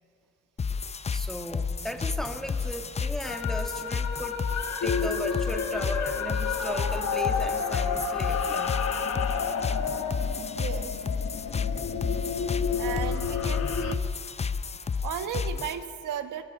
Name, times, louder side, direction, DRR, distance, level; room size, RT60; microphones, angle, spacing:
sound 1, 0.6-15.8, left 5 dB, 20° left, 0.5 m, -32 dB
voice 1, 1.1-4.4 4.8-8.8 10.6-10.7 11.9-12.0, equal, ahead, 4 dB, 2.1 m, -36 dB
sound 2, 3.2-10.1, left 5 dB, 75° left, 4.2 m, -32 dB
sound 3, 4.8-14.0, left 6 dB, 50° left, 1.1 m, -32 dB
voice 2, 10.6-11.0 12.8-14.1 15.0-16.4, right 9 dB, 85° right, 8 dB, 1.5 m, -35 dB
22.5 x 16.0 x 8.4 m, 2.4 s
cardioid pair, 90°, 30 cm